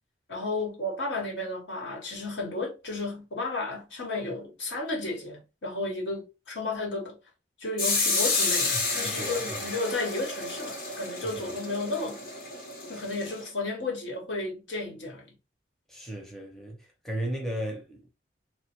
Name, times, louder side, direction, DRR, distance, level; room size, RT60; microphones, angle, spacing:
voice 1, 0.3-7.2 7.6-12.2 12.9-15.3, left 2 dB, 75° left, 1.1 m, -33 dB
sound 1, 7.8-13.4, left 3 dB, 50° left, 0.8 m, -30 dB
voice 2, 8.7-9.7 15.9-16.8 17.0-18.1, right 1 dB, ahead, 0.5 m, -35 dB
3.1 x 2.1 x 2.8 m
head